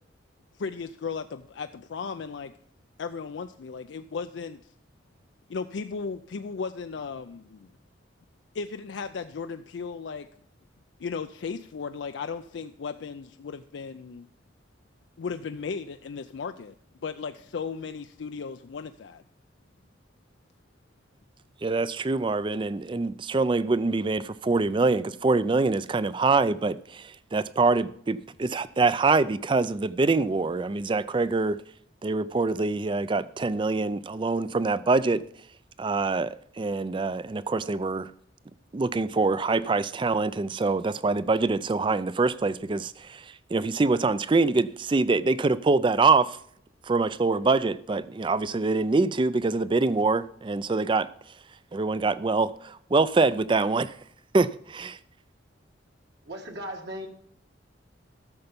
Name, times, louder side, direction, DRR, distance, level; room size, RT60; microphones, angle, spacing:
voice 1, 0.5-2.5 3.0-4.6 5.5-7.7 8.5-10.3 11.0-14.3 15.2-16.8 17.0-19.2, left 5 dB, 70° left, 0.4 m, -36 dB
voice 2, 21.6-31.6 32.0-35.2 35.8-38.1 38.7-43.2 43.5-46.4 46.9-51.1 51.7-53.9 54.3-55.0, right 3 dB, 25° right, 0.4 m, -25 dB
voice 3, 56.2-57.1, equal, 60° right, 1.6 m, -37 dB
13.5 x 6.9 x 5.2 m
head